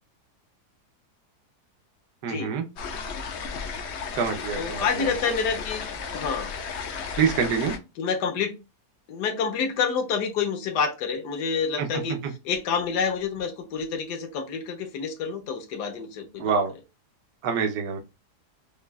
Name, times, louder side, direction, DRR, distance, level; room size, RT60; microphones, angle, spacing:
voice 1, 2.2-2.6 4.1-5.1 7.2-7.8 11.8-12.3 16.4-16.7 17.4-18.0, right 6 dB, 85° right, 4 dB, 1.4 m, -26 dB
sound 1, 2.8-7.8, left 5 dB, 60° left, 0.7 m, -34 dB
voice 2, 4.6-5.8 6.1-6.5 8.0-8.5 9.1-12.2 12.4-16.5, left 6 dB, 85° left, 6 dB, 1.4 m, -28 dB
5.2 x 2.3 x 2.3 m, 0.27 s
omnidirectional pair, 1.7 m